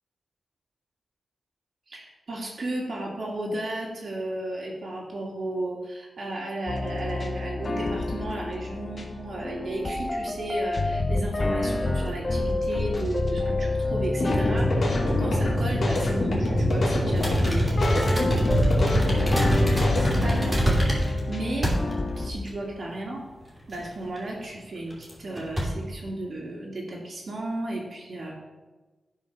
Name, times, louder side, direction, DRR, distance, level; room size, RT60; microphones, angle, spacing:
voice 1, 1.9-19.0 19.6-21.7 22.2-23.2 23.7-28.3, right 1 dB, 55° right, -3 dB, 2.1 m, -34 dB
sound 1, 6.7-22.3, left 2 dB, 35° left, 1.1 m, -29 dB
sound 2, 14.2-20.2, left 1 dB, 55° left, 2.6 m, -24 dB
sound 3, 17.2-21.2 21.6-22.2 22.5-22.6 23.7-24.2 24.9-25.1 25.4-25.6, equal, 10° right, 2.7 m, -25 dB
12.0 x 4.6 x 5.8 m, 1.2 s
wide cardioid pair, 130°, 0 cm